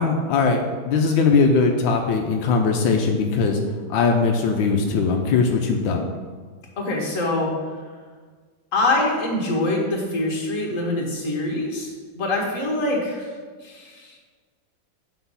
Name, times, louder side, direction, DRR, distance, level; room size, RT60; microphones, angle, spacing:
voice 1, 0.0-3.6 3.9-6.0, left 4 dB, 85° left, 3 dB, 1.4 m, -20 dB
voice 2, 6.8-7.5 8.7-11.9 12.2-13.3 13.6-14.2, left 2 dB, 45° left, -1 dB, 1.8 m, -24 dB
8.1 x 5.0 x 5.5 m, 1.5 s
omnidirectional pair, 2.1 m